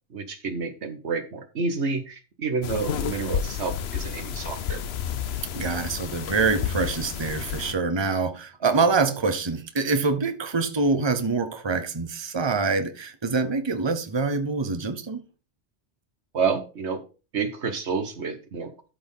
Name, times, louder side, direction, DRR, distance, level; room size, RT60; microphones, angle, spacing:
voice 1, 0.1-4.8 16.3-17.0 17.3-18.7, right 4 dB, 75° right, 1.6 m, -29 dB
sound 1, 2.6-7.7, left 8 dB, 65° left, 0.9 m, -31 dB
voice 2, 5.5-15.2, right 4 dB, 25° right, 1.1 m, -25 dB
13.0 x 4.4 x 5.5 m
omnidirectional pair, 1.2 m